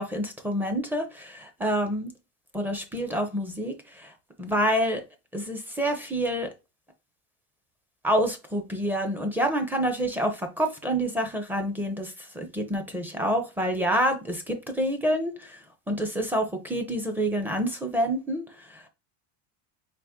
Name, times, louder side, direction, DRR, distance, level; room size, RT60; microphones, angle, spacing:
voice 1, 0.0-2.1 2.5-4.1 4.4-5.0 5.3-6.5 8.0-15.6 15.9-18.5 18.7-18.9, equal, 5° right, 0.5 m, -27 dB
4.1 x 2.9 x 3.5 m
cardioid pair, 155°, 39 cm